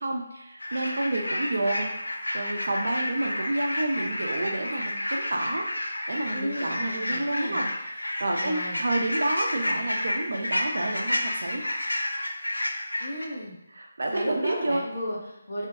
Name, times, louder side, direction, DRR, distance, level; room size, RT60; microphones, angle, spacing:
voice 1, 0.0-11.6 13.7-14.8, right 2 dB, 65° right, 1 dB, 0.7 m, -30 dB
sound 1, 0.6-13.3, left 1 dB, 85° left, 0.6 m, -31 dB
voice 2, 6.3-7.6 8.4-8.8 13.0-13.6 14.1-15.7, equal, 55° left, -3 dB, 1.2 m, -34 dB
3.8 x 3.4 x 2.7 m, 0.85 s
figure-of-eight pair, 155°, 0 cm